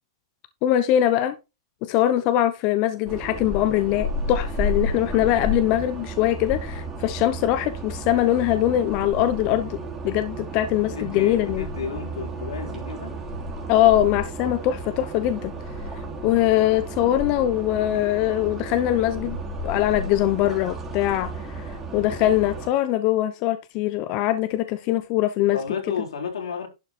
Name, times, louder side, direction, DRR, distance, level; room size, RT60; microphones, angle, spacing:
voice 1, 0.6-1.4 1.8-9.8 10.0-11.7 13.7-15.5 16.2-19.4 19.6-21.3 21.6-21.7 21.9-25.6, left 13 dB, 35° left, 0.9 m, -22 dB
sound 1, 3.1-22.7, right 1 dB, 15° right, 3.1 m, -33 dB
voice 2, 10.9-13.1 25.5-26.7, left 6 dB, 85° left, 4.2 m, -32 dB
11.5 x 6.4 x 4.3 m
hypercardioid pair, 155°, 3 cm